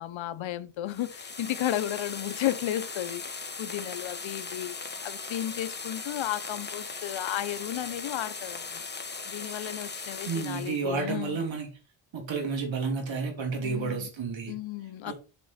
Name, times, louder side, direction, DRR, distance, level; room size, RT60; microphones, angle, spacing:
voice 1, 0.0-8.8 9.3-11.5 13.6-14.1 14.5-15.1, left 12 dB, 90° left, 0.8 m, -34 dB
sound 1, 0.9-10.8, left 4 dB, 25° left, 1.2 m, -38 dB
voice 2, 10.3-11.7 12.1-14.5 15.0-15.1, right 4 dB, 80° right, 3.2 m, -31 dB
7.5 x 6.1 x 4.1 m
cardioid pair, 110°, 45 cm